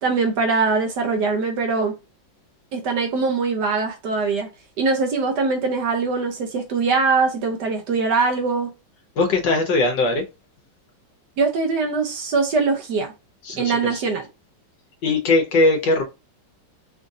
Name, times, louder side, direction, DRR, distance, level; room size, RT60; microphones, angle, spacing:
voice 1, 0.0-1.9 2.7-4.5 4.8-8.7 11.4-13.1 13.6-14.3, right 4 dB, 65° right, 1.2 m, -22 dB
voice 2, 9.2-10.2 13.5-14.0 15.0-16.0, left 2 dB, 65° left, 1.5 m, -20 dB
5.1 x 2.5 x 2.7 m
omnidirectional pair, 2.2 m